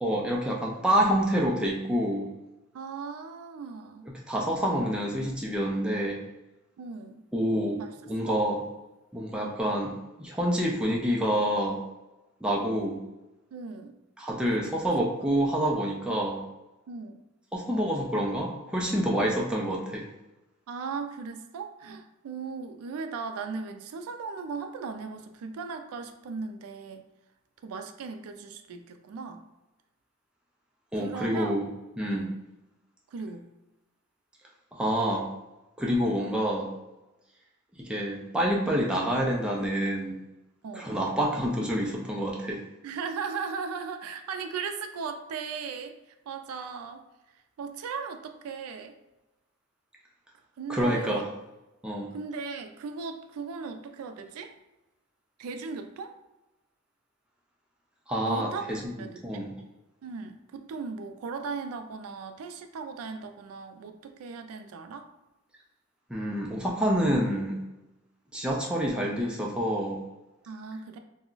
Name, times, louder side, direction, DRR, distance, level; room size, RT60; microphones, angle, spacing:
voice 1, 0.0-2.3 4.3-6.2 7.3-8.6 9.1-11.8 12.4-13.0 14.2-16.4 17.5-20.1 30.9-31.7 32.0-32.3 34.7-35.3 35.8-36.7 37.8-40.2 40.7-42.6 50.7-51.3 51.8-52.1 58.1-58.9 59.2-59.5 66.1-67.6 68.3-70.0, equal, 5° right, -2 dB, 0.3 m, -27 dB
voice 2, 2.7-4.1 6.8-7.2 7.8-7.9 8.3-8.4 13.5-13.9 14.5-14.7 16.9-17.2 20.7-27.0 27.6-29.4 31.0-31.5 32.1-32.4 33.1-33.5 40.6-40.9 42.8-45.9 46.3-47.0 47.6-48.9 50.6-51.2 52.1-54.5 55.4-56.1 58.2-58.7 59.0-59.4 60.0-65.1 70.5-71.0, right 5 dB, 80° right, 7 dB, 0.3 m, -37 dB
2.3 x 2.1 x 3.8 m, 1.0 s
head